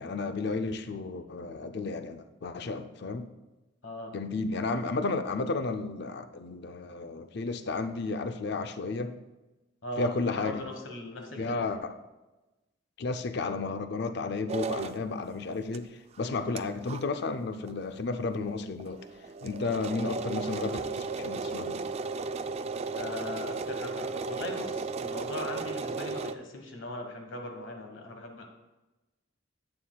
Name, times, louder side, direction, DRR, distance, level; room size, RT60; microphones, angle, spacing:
voice 1, 0.0-3.3 4.1-9.2 10.0-10.6 11.4-12.0 13.0-19.0 19.4-21.8, left 3 dB, 60° left, 9 dB, 0.5 m, -33 dB
voice 2, 9.8-11.7 22.9-28.5, left 2 dB, 80° left, 3 dB, 1.4 m, -39 dB
sound 1, 14.5-15.0 15.7-15.8 16.2-16.3 16.6-16.7 16.8-17.0 17.7-17.8 18.0-18.1 18.4-18.5 18.8-26.3, right 4 dB, 35° right, 0.3 m, -35 dB
11.5 x 8.6 x 2.3 m, 1.1 s
head